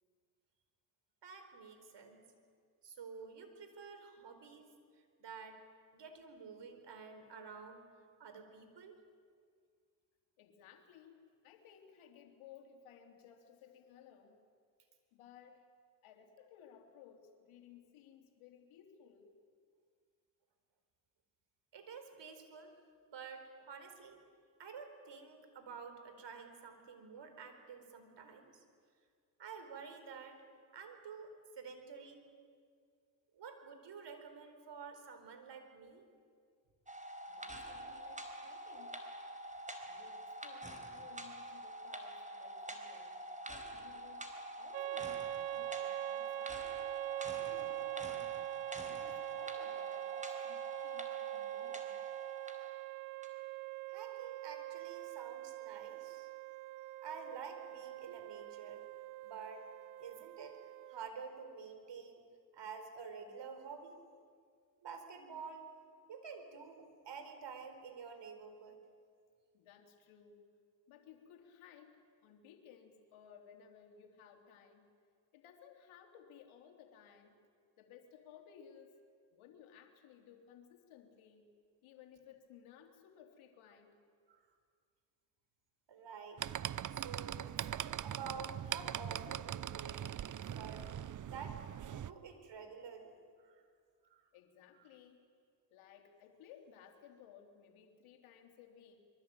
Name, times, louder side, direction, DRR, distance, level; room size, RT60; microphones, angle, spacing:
voice 1, 1.2-2.2 2.8-4.7 5.2-5.6 5.9-7.8 8.2-9.0 21.7-22.7 23.1-24.2 24.6-28.6 29.4-30.4 30.7-32.2 33.3-36.0 53.9-56.3 57.0-58.8 59.2-59.7 60.0-60.6 60.9-62.3 62.5-63.9 64.8-65.7 66.1-68.8 84.3-84.5 85.9-86.4 86.9-90.0 90.5-90.8 91.3-93.1 93.4-93.6 94.1-94.2, right 5 dB, 55° right, 8 dB, 4.6 m, -50 dB
voice 2, 10.4-14.4 15.1-15.7 16.0-19.4 37.3-39.0 39.9-44.3 44.6-46.8 47.2-48.3 48.9-52.0 69.5-70.5 70.9-74.9 75.3-77.4 77.8-79.0 79.3-81.5 81.8-84.0 94.3-95.2 95.7-99.0, left 8 dB, 75° left, 4 dB, 3.3 m, -59 dB
sound 1, 36.9-52.8 53.2-53.3, right 1 dB, 15° right, 4.4 m, -47 dB
sound 2, 44.7-61.1, right 18 dB, 90° right, 0.8 m, -43 dB
sound 3, 86.4-92.1, right 10 dB, 40° right, 0.8 m, -41 dB
24.5 x 23.5 x 9.0 m, 2.1 s
hypercardioid pair, 55°, 49 cm